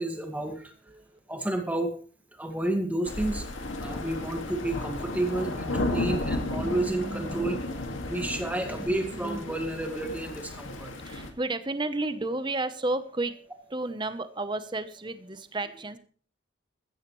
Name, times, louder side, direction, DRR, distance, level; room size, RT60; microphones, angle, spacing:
voice 1, 0.0-0.7 1.3-1.9 2.3-3.5 3.8-7.7 8.1-10.9, right 1 dB, 10° right, 3 dB, 1.9 m, -30 dB
voice 2, 0.6-1.2 7.3-7.7 11.0-16.0, right 2 dB, 25° right, 11 dB, 0.9 m, -33 dB
sound 1, 3.1-11.3, left 2 dB, 85° left, 2.1 m, -34 dB
15.0 x 13.0 x 3.2 m, 0.43 s
head